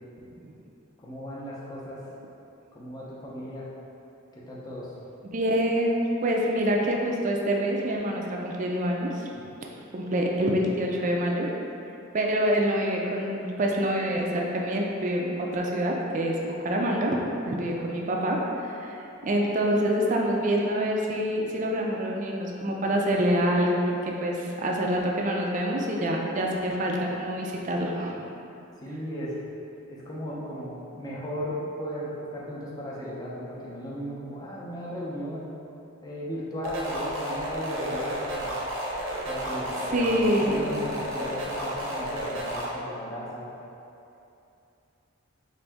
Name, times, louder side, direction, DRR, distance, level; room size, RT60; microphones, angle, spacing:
voice 1, 1.0-2.0 2.7-3.7 4.3-4.9 10.6-10.7 28.8-29.4 29.9-35.5 36.0-38.6 39.2-43.5, equal, 20° left, -7 dB, 0.5 m, -36 dB
voice 2, 5.2-9.5 9.9-11.5 12.1-16.3 16.6-17.2 17.5-19.0 19.2-28.2 39.9-40.5, equal, 35° right, -1 dB, 0.4 m, -26 dB
sound 1, 36.6-42.6, equal, 70° right, 0.7 m, -32 dB
3.9 x 2.6 x 3.4 m, 2.8 s
head